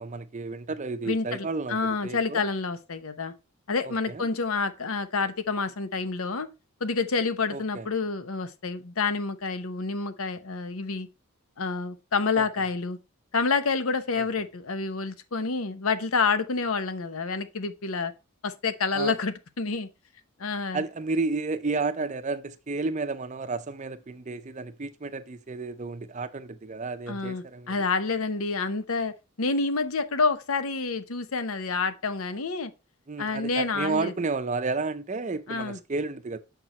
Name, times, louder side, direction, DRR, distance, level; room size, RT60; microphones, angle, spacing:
voice 1, 0.0-2.4 3.8-4.3 7.5-7.9 12.4-12.5 14.2-14.3 18.9-19.1 20.7-27.7 33.1-36.4, right 3 dB, 35° right, 0.5 m, -32 dB
voice 2, 1.1-3.3 3.7-6.5 6.8-11.1 11.6-13.0 13.3-18.1 18.4-19.9 20.4-20.8 27.1-32.7 33.2-34.1 35.5-35.8, left 4 dB, 75° left, 0.8 m, -28 dB
6.6 x 4.6 x 4.2 m
head